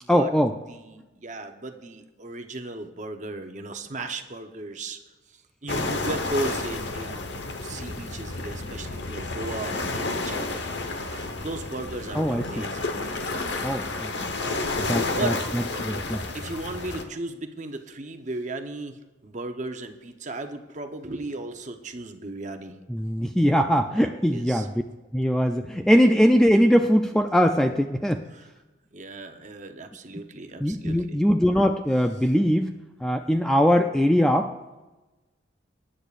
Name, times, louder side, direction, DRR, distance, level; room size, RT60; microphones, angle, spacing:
voice 1, 0.1-0.6 12.1-12.6 13.6-14.1 14.9-16.2 22.9-24.7 25.1-28.2 30.6-34.5, equal, 5° left, 6 dB, 0.3 m, -21 dB
voice 2, 0.7-5.0 5.6-7.3 7.6-10.6 11.1-12.9 15.2-15.4 16.3-22.7 23.9-24.7 28.3-28.5 28.9-31.2, right 2 dB, 40° right, 6 dB, 0.9 m, -36 dB
sound 1, 5.7-17.0, left 2 dB, 60° left, 1.1 m, -31 dB
19.5 x 10.0 x 2.5 m, 1.1 s
head